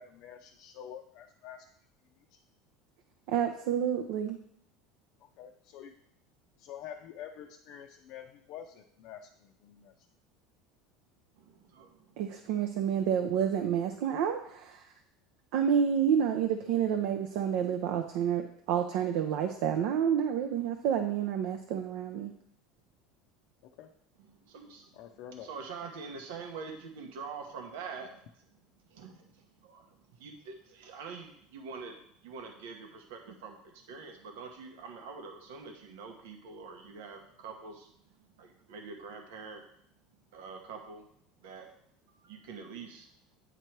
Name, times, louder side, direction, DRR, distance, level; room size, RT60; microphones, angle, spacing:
voice 1, 0.0-1.6 5.4-5.9 6.6-9.9 23.6-23.9 25.0-25.5, left 9 dB, 55° left, 2 dB, 0.5 m, -47 dB
voice 2, 3.3-4.4 12.2-14.9 15.5-22.3, right 8 dB, 65° right, 5 dB, 0.5 m, -29 dB
voice 3, 11.4-12.2 24.3-28.5 28.9-39.6 40.3-41.0 41.4-41.7 42.1-43.1, right 5 dB, 90° right, 3 dB, 0.9 m, -45 dB
9.1 x 3.0 x 4.5 m, 0.69 s
cardioid pair, 150°, 0 cm